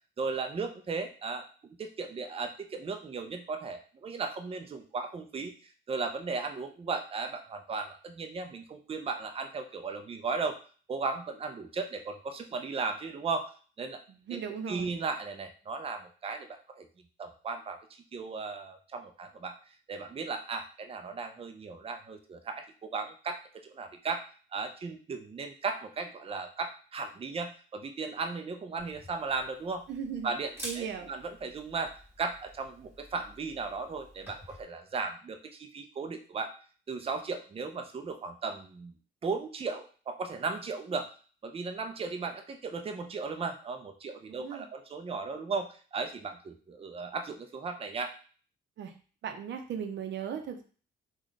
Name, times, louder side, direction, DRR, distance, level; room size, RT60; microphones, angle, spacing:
voice 1, 0.2-5.5 5.9-10.6 10.9-13.5 13.8-14.0 14.3-14.4 14.7-16.9 17.2-19.6 19.9-24.2 24.5-29.8 30.2-36.5 36.9-38.9 39.2-41.1 41.4-48.1, right 4 dB, 30° right, 6 dB, 0.5 m, -36 dB
voice 2, 14.3-14.9 29.9-30.3 30.6-31.1 44.3-44.7 48.8-48.9 49.2-50.6, right 7 dB, 65° right, 5 dB, 0.7 m, -37 dB
Camera, 28.8-34.6, equal, 10° right, 1.7 m, -49 dB
3.1 x 2.3 x 3.9 m, 0.40 s
cardioid pair, 90°, 20 cm